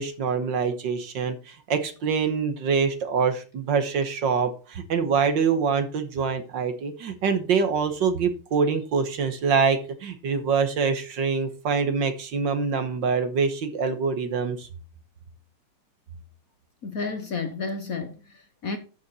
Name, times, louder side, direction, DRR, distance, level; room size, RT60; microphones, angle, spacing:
voice 1, 0.0-14.7, right 5 dB, 60° right, 1.8 m, -25 dB
voice 2, 16.8-18.8, left 4 dB, 50° left, 1.3 m, -31 dB
12.0 x 7.0 x 4.2 m
omnidirectional pair, 2.3 m